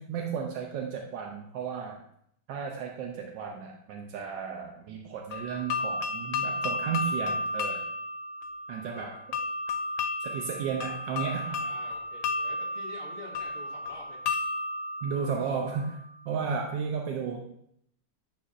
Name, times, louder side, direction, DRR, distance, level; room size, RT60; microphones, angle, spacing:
voice 1, 0.0-2.0 2.5-7.8 8.7-9.2 10.2-11.6 15.0-16.0 16.2-17.4, right 6 dB, 80° right, 1 dB, 1.4 m, -34 dB
sound 1, 5.3-16.1, left 3 dB, 85° left, 1.3 m, -33 dB
voice 2, 8.8-9.3 11.4-14.2, left 1 dB, 45° right, -3 dB, 1.9 m, -48 dB
10.0 x 4.2 x 2.5 m, 0.72 s
omnidirectional pair, 1.9 m